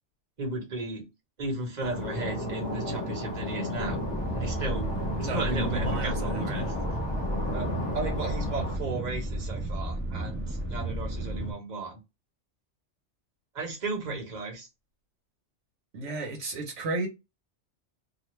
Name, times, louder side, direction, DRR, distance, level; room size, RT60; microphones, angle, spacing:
voice 1, 0.4-1.1 1.4-4.0 4.3-4.9 5.2-6.7 7.5-12.0 13.5-14.7, right 2 dB, 40° right, 1.2 m, -35 dB
sound 1, 1.8-8.8, left 1 dB, 45° left, 0.9 m, -34 dB
sound 2, 3.8-11.5, right 1 dB, 10° right, 0.7 m, -33 dB
voice 2, 5.2-6.7 15.9-17.1, right 1 dB, 80° right, 1.2 m, -33 dB
2.5 x 2.4 x 3.0 m
omnidirectional pair, 1.2 m